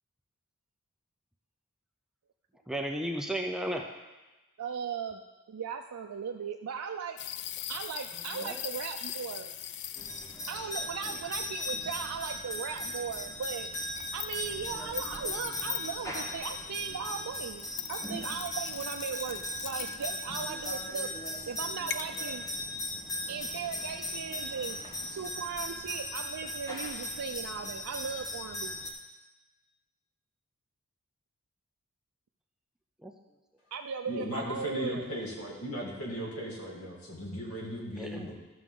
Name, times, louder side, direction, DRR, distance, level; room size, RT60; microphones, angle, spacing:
voice 1, 2.7-3.9 8.3-8.6 11.1-11.2 33.0-33.1 38.0-38.3, right 1 dB, ahead, 2 dB, 0.5 m, -34 dB
voice 2, 4.6-5.2 5.5-7.2 7.7-9.5 10.5-13.7 14.1-21.1 21.5-22.4 23.3-24.8 25.1-28.8 33.7-35.1, right 6 dB, 85° right, 3 dB, 0.5 m, -37 dB
sound 1, 7.2-10.6 11.4-11.5 12.8-13.1 13.5-14.5 14.8-16.0 17.6-20.8 21.9-22.2, left 12 dB, 50° left, 0.4 m, -40 dB
sound 2, 10.0-28.9, left 1 dB, 15° left, 1.1 m, -38 dB
voice 3, 34.1-38.3, equal, 80° left, -3 dB, 2.4 m, -37 dB
13.5 x 6.1 x 3.8 m, 1.1 s
head